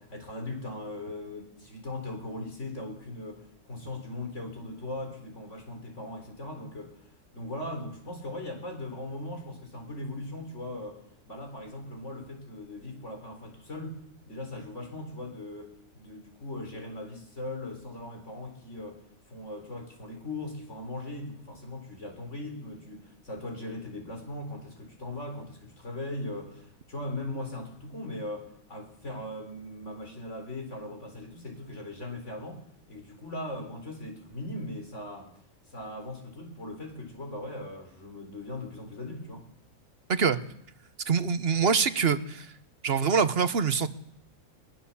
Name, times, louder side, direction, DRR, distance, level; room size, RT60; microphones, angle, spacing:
voice 1, 0.0-6.9 7.3-14.0 14.3-19.0 19.3-32.6 32.9-35.3 35.7-39.4, left 1 dB, 60° left, 3 dB, 4.4 m, -39 dB
voice 2, 40.1-40.4 41.1-42.5 42.8-43.9, right 6 dB, 50° right, 12 dB, 1.3 m, -25 dB
22.5 x 21.0 x 7.2 m, 0.71 s
omnidirectional pair, 1.4 m